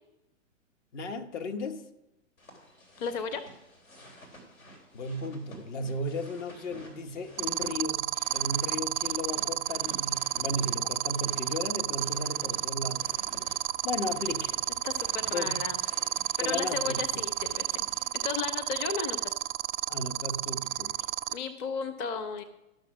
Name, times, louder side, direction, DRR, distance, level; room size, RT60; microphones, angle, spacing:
voice 1, 0.9-1.8 4.9-13.1 13.8-14.6 15.3-15.5 16.4-17.2 19.9-21.1, left 2 dB, 60° left, 1.4 m, -35 dB
sound 1, 2.4-18.1, equal, 85° left, 3.7 m, -52 dB
voice 2, 3.0-3.4 14.8-15.8 16.4-17.9 18.2-19.3 21.3-22.4, left 5 dB, 25° left, 0.7 m, -34 dB
sound 2, 7.4-21.3, right 13 dB, 40° right, 0.4 m, -29 dB
12.5 x 6.6 x 6.0 m
hypercardioid pair, 120°, 40 cm